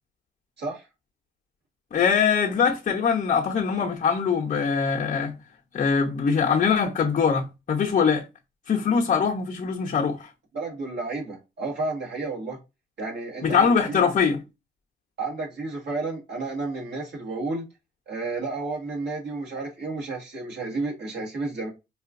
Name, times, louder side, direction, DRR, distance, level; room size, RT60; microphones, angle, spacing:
voice 1, 1.9-5.4 5.7-8.2 8.7-10.3 13.4-14.4, left 6 dB, 40° left, 0.8 m, -22 dB
voice 2, 10.5-12.6 13.0-14.0 15.2-17.7 18.1-21.7, right 3 dB, 60° right, 1.8 m, -31 dB
4.6 x 2.5 x 2.5 m
cardioid pair, 90°, 20 cm